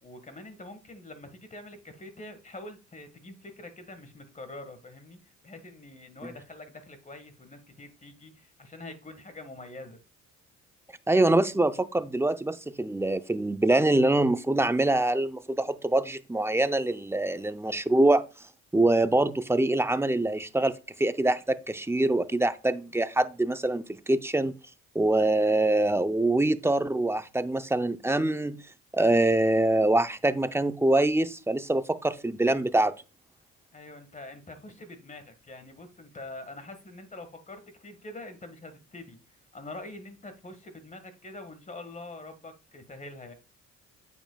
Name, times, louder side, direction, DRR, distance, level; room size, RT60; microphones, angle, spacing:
voice 1, 0.0-10.0 33.7-39.2 39.5-43.3, left 2 dB, 25° left, 1.6 m, -45 dB
voice 2, 11.1-18.2 18.7-24.5 24.9-28.6 28.9-32.9, right 2 dB, 10° right, 0.6 m, -24 dB
8.8 x 7.3 x 2.3 m
cardioid pair, 90°, 30 cm